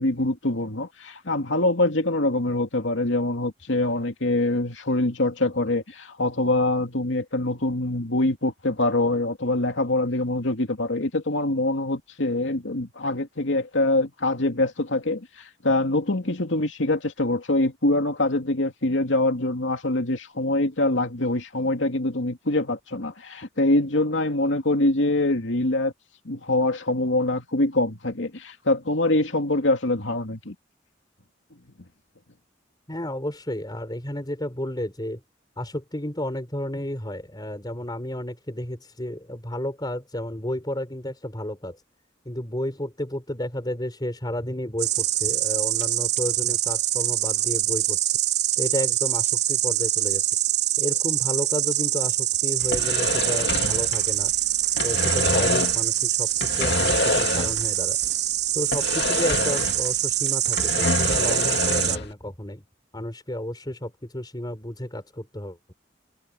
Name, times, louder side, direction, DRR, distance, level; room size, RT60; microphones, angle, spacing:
voice 1, 0.0-25.9 26.2-30.5, left 2 dB, 85° left, 2.4 m, -24 dB
voice 2, 32.9-35.2 35.6-41.8 42.2-48.1 48.6-50.2 50.8-54.3 54.8-58.0 58.5-62.6 62.9-65.7, left 1 dB, 25° left, 4.8 m, -32 dB
Insect, 44.8-62.0, right 13 dB, 60° right, 3.5 m, -24 dB
sound 1, 52.6-54.4 54.6-55.9 56.4-57.8 58.0-58.1 58.7-60.0 60.3-62.1, left 3 dB, 65° left, 2.3 m, -26 dB
head